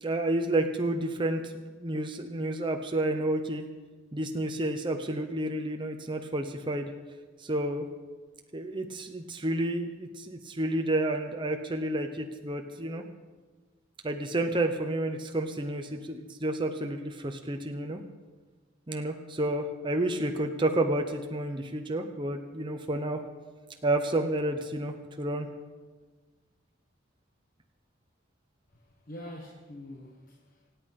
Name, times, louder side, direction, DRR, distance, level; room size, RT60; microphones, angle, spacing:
voice 1, 0.0-3.7 4.1-6.9 7.4-7.8 8.5-13.0 14.0-18.0 18.9-23.2 23.8-25.5, right 1 dB, 25° right, 4 dB, 1.0 m, -30 dB
voice 2, 28.7-30.7, left 1 dB, 45° left, -1 dB, 1.5 m, -45 dB
26.0 x 8.8 x 5.5 m, 1.3 s
head